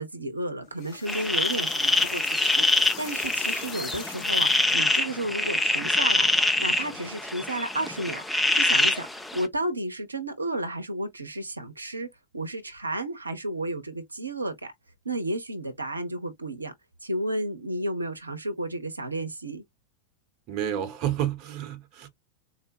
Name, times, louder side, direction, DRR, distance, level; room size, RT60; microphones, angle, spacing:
voice 1, 0.0-2.7 3.0-6.3 6.6-9.1 9.3-12.1 12.3-14.7 15.0-16.7 17.0-19.6, right 1 dB, 80° right, 0.7 m, -32 dB
sound 1, 0.6-5.0, left 7 dB, 40° left, 1.0 m, -42 dB
sound 2, 1.1-9.5, left 2 dB, 5° left, 0.5 m, -25 dB
voice 2, 20.5-22.1, right 11 dB, 40° right, 0.8 m, -30 dB
4.0 x 2.1 x 2.7 m
figure-of-eight pair, 90°, 0 cm